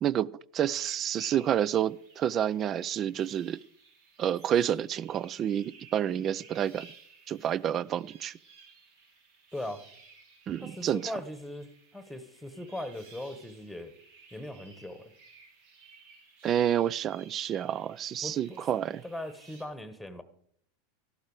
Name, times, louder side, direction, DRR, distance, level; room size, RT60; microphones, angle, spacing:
voice 1, 0.0-3.6 4.2-6.9 7.3-8.3 10.5-11.1 16.4-19.0, right 10 dB, 35° right, 23 dB, 0.4 m, -29 dB
sound 1, 0.7-19.6, right 4 dB, 70° right, 3.2 m, -56 dB
voice 2, 9.5-9.8 10.6-14.0 14.3-15.1 18.2-18.6 19.0-20.2, left 1 dB, ahead, 12 dB, 1.3 m, -39 dB
13.5 x 12.0 x 4.9 m, 0.63 s
hypercardioid pair, 100°, 0 cm